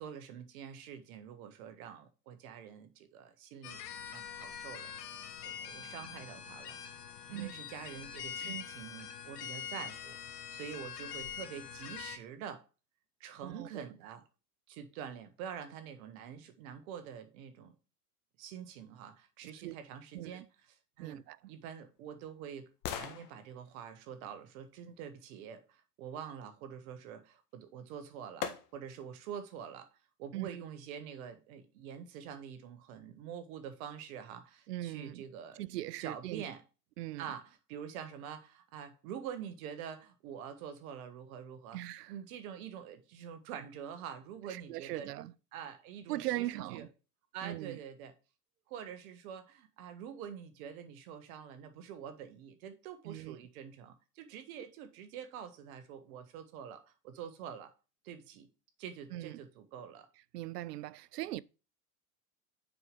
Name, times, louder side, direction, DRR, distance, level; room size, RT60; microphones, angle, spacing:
voice 1, 0.0-4.9 5.4-6.8 7.3-12.6 13.2-14.2 14.7-17.7 18.4-29.9 30.2-35.6 36.0-36.6 37.2-41.8 42.1-46.9 47.3-48.1 48.7-57.7 58.0-58.5 58.8-60.1, right 8 dB, 60° right, 1.7 m, -46 dB
sound 1, 3.6-12.2, left 8 dB, 85° left, 1.3 m, -44 dB
voice 2, 13.4-14.1 19.6-19.8 20.1-20.4 21.0-21.4 30.3-30.5 34.7-35.2 35.6-36.4 37.0-37.3 41.7-42.1 44.5-45.3 46.1-46.9 47.4-47.8 53.0-53.4 59.1-59.4 60.3-61.4, right 16 dB, 85° right, 0.6 m, -40 dB
sound 2, 21.3-25.4 27.5-27.6 28.4-29.1 29.6-29.7, left 9 dB, 40° left, 1.5 m, -45 dB
7.0 x 4.7 x 5.4 m
hypercardioid pair, 110°, 47 cm